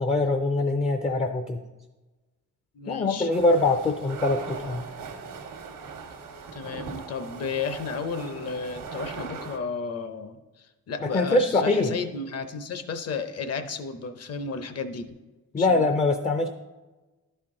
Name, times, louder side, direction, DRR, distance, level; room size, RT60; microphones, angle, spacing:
voice 1, 0.0-1.6 2.9-4.8 11.0-11.9 15.5-16.5, left 2 dB, 20° left, 6 dB, 0.4 m, -23 dB
voice 2, 2.7-3.3 6.5-15.2 15.6-15.8, left 5 dB, 50° left, 9 dB, 0.7 m, -33 dB
sound 1, 3.3-9.6, right 5 dB, 85° right, 1.1 m, -39 dB
11.5 x 4.5 x 3.7 m, 1.2 s
cardioid pair, 125°, 32 cm